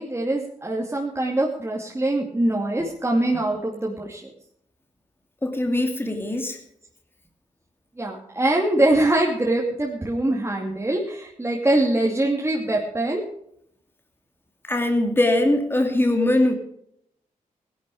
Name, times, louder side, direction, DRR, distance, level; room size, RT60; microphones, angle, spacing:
voice 1, 0.0-4.2 8.0-13.2, right 1 dB, 20° right, -2 dB, 2.6 m, -23 dB
voice 2, 5.4-6.6 14.7-16.5, left 1 dB, 15° left, 4 dB, 2.5 m, -21 dB
17.0 x 11.5 x 5.0 m, 0.72 s
cardioid pair, 80°, 14 cm